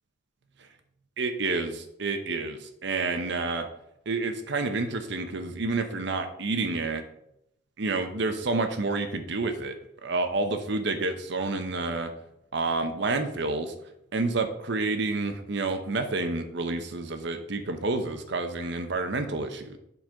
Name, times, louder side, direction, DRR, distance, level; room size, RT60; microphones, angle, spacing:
voice 1, 1.2-3.7 4.1-7.0 7.8-9.7 10.0-12.1 12.5-13.7 14.1-19.8, right 3 dB, 65° right, 7 dB, 0.8 m, -29 dB
7.5 x 4.0 x 5.1 m, 0.78 s
head